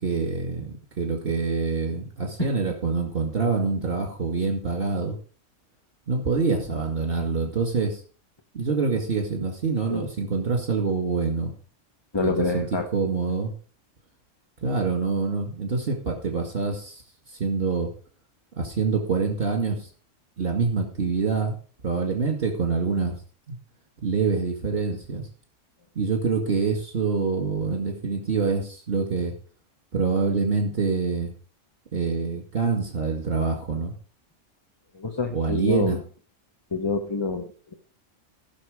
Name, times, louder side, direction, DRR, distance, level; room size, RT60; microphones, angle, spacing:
voice 1, 0.0-5.2 6.1-8.0 8.5-11.5 12.2-12.7 12.9-13.5 14.6-17.9 18.6-19.9 20.4-21.6 21.8-23.2 23.5-23.6 24.0-25.3 26.0-29.3 29.9-31.3 31.9-33.9 35.3-36.0, right 4 dB, 50° right, 2 dB, 2.2 m, -26 dB
voice 2, 12.1-12.9 34.9-36.0 36.7-37.7, left 3 dB, 20° left, 4 dB, 1.0 m, -27 dB
16.0 x 6.2 x 5.0 m, 0.41 s
omnidirectional pair, 1.3 m